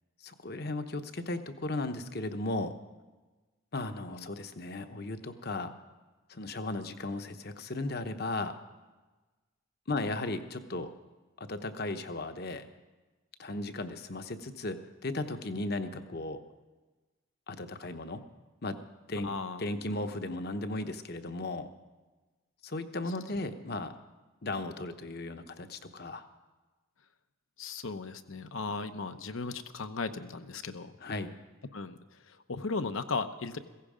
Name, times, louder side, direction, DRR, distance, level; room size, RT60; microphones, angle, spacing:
voice 1, 0.2-2.8 3.7-5.7 6.3-8.6 9.9-10.9 11.4-12.7 13.4-16.4 17.5-18.2 18.6-18.8 19.1-19.3 19.6-21.7 22.6-23.9 24.4-26.2 31.0-31.3, left 2 dB, 50° left, 8 dB, 1.0 m, -36 dB
voice 2, 19.2-19.6 27.6-30.9 31.7-32.0 32.5-33.6, left 4 dB, 75° left, 9 dB, 0.9 m, -36 dB
16.0 x 15.5 x 5.0 m, 1.2 s
head